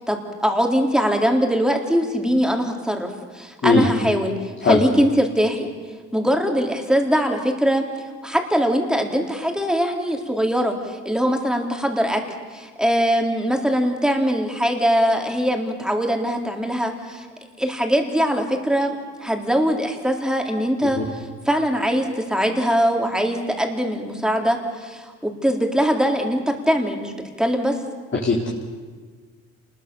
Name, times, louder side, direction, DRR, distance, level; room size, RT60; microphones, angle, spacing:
voice 1, 0.0-5.7 6.1-7.8 8.2-12.2 12.5-17.3 17.6-27.1 27.4-27.8, equal, ahead, 3 dB, 3.9 m, -22 dB
voice 2, 3.6-3.9 4.6-4.8 20.8-21.0 28.2-28.5, left 3 dB, 40° left, -3 dB, 4.2 m, -19 dB
28.5 x 21.0 x 7.2 m, 1.5 s
cardioid pair, 90°, 30 cm